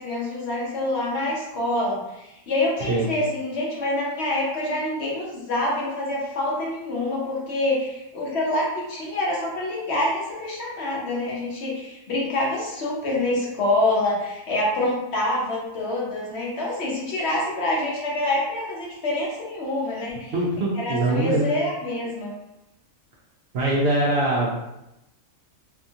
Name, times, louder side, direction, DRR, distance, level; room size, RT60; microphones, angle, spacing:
voice 1, 0.0-20.3 20.7-22.3, left 1 dB, 60° left, -4 dB, 0.9 m, -26 dB
voice 2, 20.3-21.6 23.5-24.5, right 2 dB, 60° right, -5 dB, 0.7 m, -22 dB
2.8 x 2.3 x 2.7 m, 0.89 s
omnidirectional pair, 1.4 m